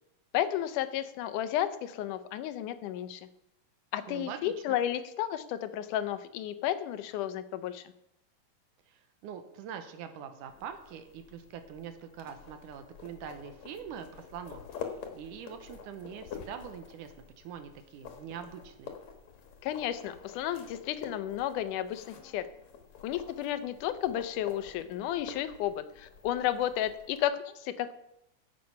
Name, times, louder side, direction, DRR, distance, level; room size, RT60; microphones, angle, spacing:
voice 1, 0.3-3.2 3.9-7.8 19.6-22.5 23.0-27.9, left 11 dB, 85° left, 12 dB, 2.2 m, -32 dB
voice 2, 4.1-4.8 8.9-19.0, right 8 dB, 80° right, 8 dB, 2.5 m, -44 dB
sound 1, 10.5-27.2, left 7 dB, 65° left, 2.6 m, -48 dB
10.5 x 7.7 x 5.7 m, 0.84 s
omnidirectional pair, 3.6 m